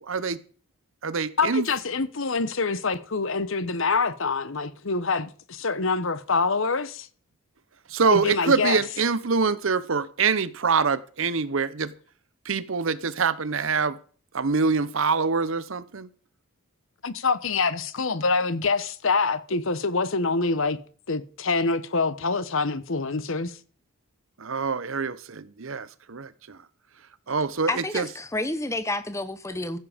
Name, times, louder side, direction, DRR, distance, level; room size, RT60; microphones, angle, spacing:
voice 1, 0.0-0.4 1.0-1.7 7.9-11.9 12.4-14.0 14.3-16.1 24.4-26.6 27.3-28.1, right 5 dB, 60° right, 0.8 m, -25 dB
voice 2, 1.4-7.1 8.1-8.8 17.0-20.8 21.1-23.6, left 4 dB, 60° left, 0.9 m, -25 dB
voice 3, 27.7-29.8, left 2 dB, 15° left, 0.8 m, -29 dB
15.0 x 7.4 x 5.1 m
head